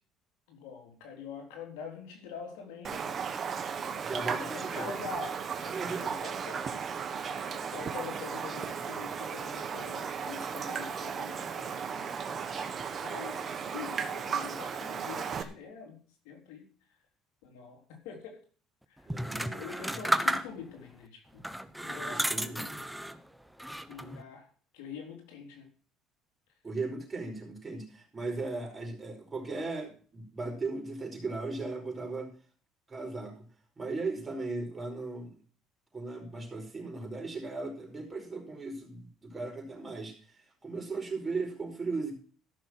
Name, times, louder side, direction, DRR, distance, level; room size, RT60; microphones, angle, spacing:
voice 1, 0.5-3.2 4.2-6.6 7.2-12.7 13.0-16.0 16.2-16.7 17.4-18.4 18.9-19.1 19.5-21.4 21.8-22.8 23.9-25.7, left 6 dB, 90° left, 2 dB, 3.9 m, -45 dB
Raindrop, 2.8-15.4, right 6 dB, 40° right, 1.5 m, -35 dB
voice 2, 4.0-5.0 5.6-6.1 19.1-19.9 21.9-22.6 26.6-32.3 32.9-33.5 33.8-35.3 35.9-42.1, right 3 dB, 20° right, 1 dB, 5.1 m, -37 dB
sound 1, 19.1-20.8 21.4-23.2 23.6-24.2, equal, 5° right, 0.9 m, -32 dB
14.0 x 6.3 x 6.1 m, 0.42 s
supercardioid pair, 95°, 0 cm